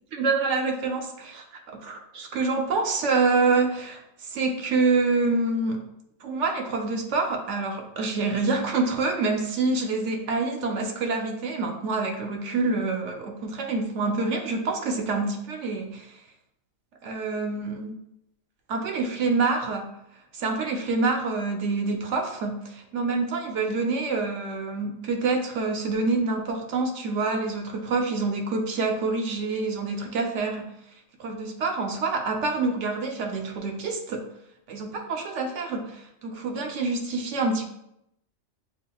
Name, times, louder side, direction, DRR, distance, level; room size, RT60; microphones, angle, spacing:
voice 1, 0.1-5.8 6.2-16.2 17.0-17.9 18.7-19.9 20.3-30.7 31.2-34.2 34.7-37.7, right 3 dB, 75° right, 3 dB, 1.0 m, -27 dB
7.0 x 2.4 x 2.2 m, 0.78 s
omnidirectional pair, 1.3 m